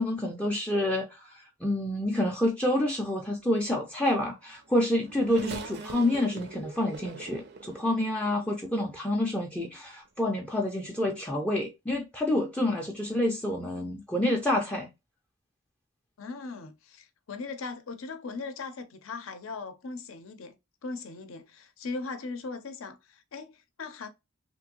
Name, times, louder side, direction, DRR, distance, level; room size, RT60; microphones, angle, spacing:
voice 1, 0.0-14.9, left 1 dB, 5° left, 0.4 m, -28 dB
Race car auto racing / Accelerating revving vroom, 4.3-8.9 9.6-9.7 10.8-11.0, right 3 dB, 55° right, 0.5 m, -42 dB
voice 2, 16.2-20.6 20.8-24.1, left 4 dB, 75° left, 0.6 m, -39 dB
2.9 x 2.5 x 2.9 m
head